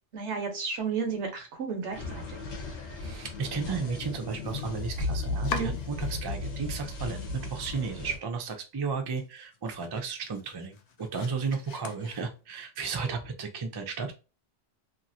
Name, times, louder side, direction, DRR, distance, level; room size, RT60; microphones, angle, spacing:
voice 1, 0.1-2.4 5.5-5.7, right 5 dB, 90° right, 4 dB, 1.1 m, -33 dB
sound 1, 1.9-8.2, left 2 dB, 85° left, 1.1 m, -35 dB
voice 2, 3.0-14.1, right 5 dB, 40° right, 5 dB, 0.3 m, -34 dB
Domestic sounds home sounds, 4.0-6.6 6.9-7.6 8.0-8.1 8.5-8.6 9.0-12.7, left 5 dB, 60° left, 0.4 m, -43 dB
2.9 x 2.4 x 2.6 m, 0.31 s
omnidirectional pair, 1.1 m